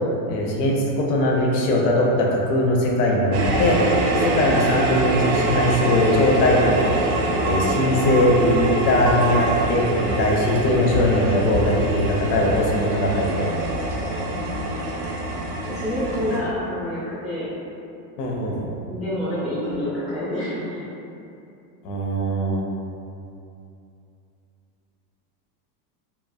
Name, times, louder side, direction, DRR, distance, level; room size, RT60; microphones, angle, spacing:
voice 1, 0.3-3.8 4.1-7.0 7.4-13.5 18.2-18.6 21.8-22.7, left 1 dB, 75° left, -1 dB, 0.7 m, -20 dB
sound 1, 3.3-16.4, right 2 dB, 90° right, 0.7 m, -24 dB
voice 2, 14.3-14.7 15.7-17.5 18.9-20.8, left 1 dB, ahead, -14 dB, 0.4 m, -28 dB
3.1 x 2.3 x 2.2 m, 2.7 s
supercardioid pair, 145°, 49 cm